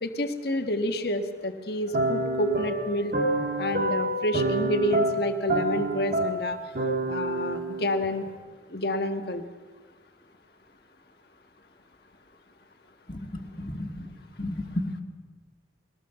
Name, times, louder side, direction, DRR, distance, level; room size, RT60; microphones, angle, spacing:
voice 1, 0.0-3.2 3.6-6.6 7.1-8.2 8.7-9.4, left 1 dB, 55° left, 7 dB, 1.6 m, -28 dB
sound 1, 1.9-8.3, right 1 dB, 50° right, 1.8 m, -28 dB
voice 2, 13.1-14.1 14.4-15.0, left 1 dB, 25° left, 2 dB, 2.3 m, -33 dB
21.5 x 18.0 x 7.0 m, 1.5 s
head